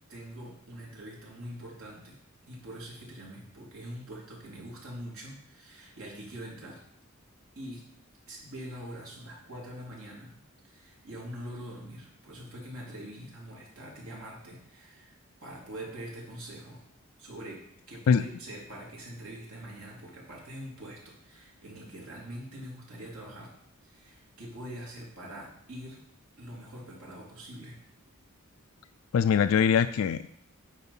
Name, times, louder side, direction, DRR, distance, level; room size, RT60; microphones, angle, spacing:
voice 1, 0.1-2.2 2.5-6.8 7.5-7.8 8.3-10.3 10.6-16.8 17.2-23.5 23.8-26.0 26.4-27.8, right 1 dB, 75° right, -3 dB, 3.0 m, -44 dB
voice 2, 29.1-30.3, left 7 dB, 65° left, 10 dB, 0.3 m, -22 dB
9.7 x 5.0 x 5.5 m, 0.72 s
head